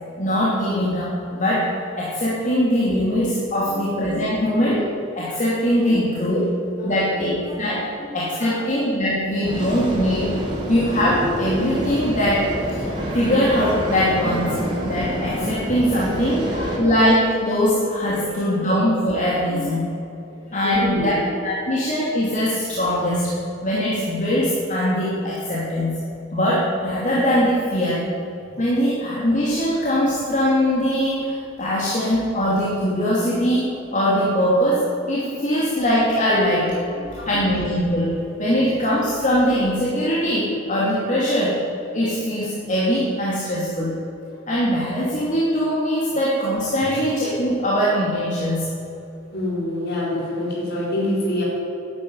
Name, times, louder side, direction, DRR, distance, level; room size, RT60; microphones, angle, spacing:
voice 1, 0.2-1.7 2.0-4.8 5.1-6.4 6.8-7.3 7.6-7.9 8.1-10.4 10.7-12.5 12.7-14.6 14.8-16.4 16.8-19.8 20.5-21.1 21.4-23.3 23.6-26.0 26.3-28.1 28.6-36.8 37.3-41.6 41.9-43.9 44.5-48.7, equal, 40° left, -6 dB, 2.7 m, -21 dB
voice 2, 3.6-4.4 5.8-6.1 6.4-8.1 8.4-8.7 9.0-9.2 16.2-16.9 18.1-18.7 19.5-19.9 20.2-21.2 21.7-21.8 36.4-36.5 36.9-37.3 46.8-46.9 49.3-51.4, left 1 dB, 55° left, -4 dB, 4.1 m, -29 dB
sound 1, 9.4-16.8, equal, 25° right, 3.6 m, -27 dB
11.5 x 9.5 x 9.7 m, 2.7 s
head